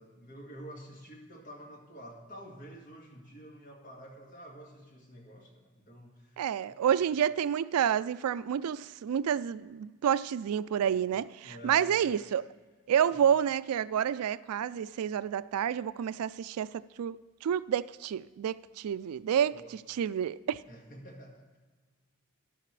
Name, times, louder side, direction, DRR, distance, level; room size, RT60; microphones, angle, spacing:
voice 1, 0.0-7.1 11.4-12.1 13.0-13.2 19.5-19.7 20.7-21.6, equal, 35° left, 1.8 m, -49 dB
voice 2, 6.4-12.4 12.9-16.7 17.0-19.6 19.9-20.6, right 9 dB, 85° right, 0.3 m, -29 dB
13.5 x 11.0 x 3.2 m
head